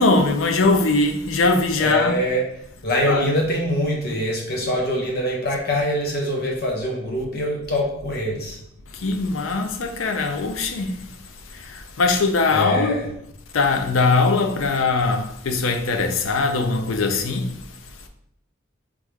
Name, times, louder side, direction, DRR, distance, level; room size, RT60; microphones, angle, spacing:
voice 1, 0.0-2.2 3.1-3.3 9.0-10.9 11.7-13.0 13.5-17.5, left 3 dB, 90° left, 0.5 m, -21 dB
voice 2, 1.8-2.4 2.8-8.6 12.5-13.1, equal, 55° left, 1.1 m, -24 dB
3.6 x 3.3 x 3.5 m
head